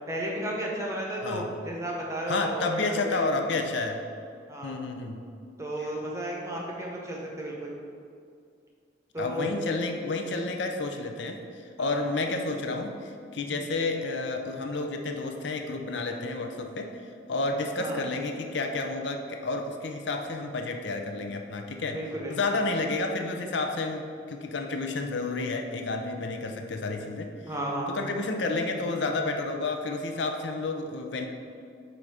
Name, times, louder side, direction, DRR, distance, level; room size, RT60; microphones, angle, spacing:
voice 1, 0.1-3.3 4.5-4.8 5.6-7.7 9.1-9.5 11.8-12.1 13.5-13.6 17.7-18.0 21.9-22.5 27.5-27.9, right 1 dB, 15° right, -2 dB, 0.8 m, -33 dB
voice 2, 2.3-4.0 4.6-5.2 5.8-5.9 9.2-22.0 22.3-27.3 27.9-31.3, left 3 dB, 70° left, 4 dB, 0.5 m, -30 dB
7.5 x 2.6 x 4.8 m, 2.3 s
head